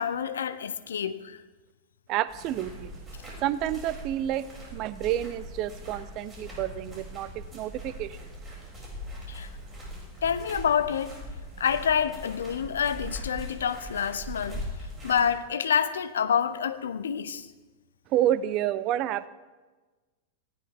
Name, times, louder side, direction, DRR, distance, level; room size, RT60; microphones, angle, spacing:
voice 1, 0.0-1.4 9.3-9.5 10.2-11.1 11.6-14.7 15.0-17.5, left 7 dB, 65° left, 13 dB, 0.9 m, -27 dB
voice 2, 2.1-2.9 3.4-4.5 4.7-8.2 18.1-19.3, right 12 dB, 40° right, 16 dB, 0.7 m, -29 dB
sound 1, 2.3-15.4, equal, 20° right, 7.1 m, -41 dB
19.5 x 17.5 x 3.7 m, 1.2 s
figure-of-eight pair, 90°, 0 cm